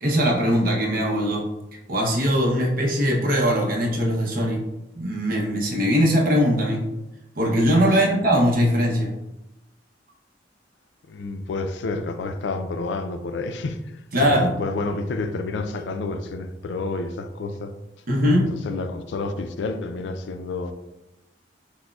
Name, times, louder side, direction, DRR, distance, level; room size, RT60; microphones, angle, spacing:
voice 1, 0.0-1.5 1.9-4.6 4.9-6.8 7.4-9.1 14.1-14.5 18.1-18.5, equal, 55° right, 0.7 m, -21 dB
voice 2, 7.9-8.2 11.1-13.8 14.2-17.8 18.3-20.7, left 3 dB, 90° left, 0.4 m, -29 dB
6.0 x 2.1 x 2.3 m
head